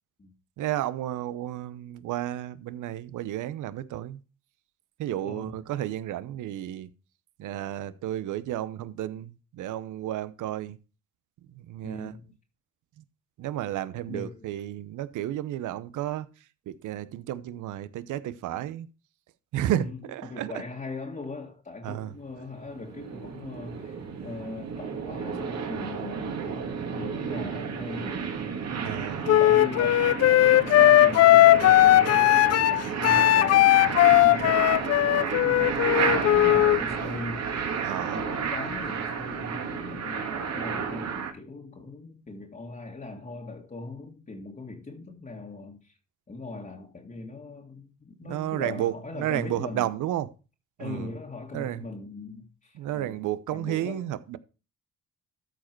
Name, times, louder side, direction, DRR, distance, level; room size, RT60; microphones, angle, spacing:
voice 1, 0.6-4.2 5.0-6.9 7.4-10.8 11.5-12.1 13.4-16.3 16.7-18.9 19.5-20.5 21.8-22.1 28.8-29.2 37.8-38.2 48.2-50.3 50.8-51.1 51.5-51.8 52.8-54.4, right 12 dB, 80° right, 0.9 m, -32 dB
voice 2, 5.2-5.6 11.8-12.3 14.1-14.5 19.7-28.3 28.9-30.3 30.6-34.8 35.4-37.5 38.0-45.9 46.3-49.9 50.8-53.2 53.5-54.0, left 3 dB, 25° left, 1.8 m, -40 dB
sound 1, 22.4-41.3, right 6 dB, 60° right, 2.2 m, -32 dB
Wind instrument woodwind instrument, 29.3-36.8, left 14 dB, 55° left, 0.5 m, -18 dB
13.5 x 4.9 x 4.6 m
cardioid pair, 90°, 30 cm